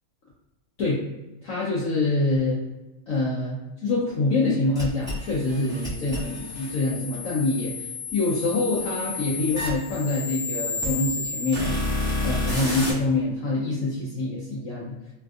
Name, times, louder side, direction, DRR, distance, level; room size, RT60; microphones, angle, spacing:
voice 1, 1.4-2.6 3.1-11.7 12.2-14.9, left 2 dB, 70° left, -7 dB, 0.8 m, -25 dB
sound 1, 4.7-12.9, left 2 dB, ahead, 1.0 m, -30 dB
3.4 x 2.4 x 2.4 m, 1.0 s
omnidirectional pair, 2.1 m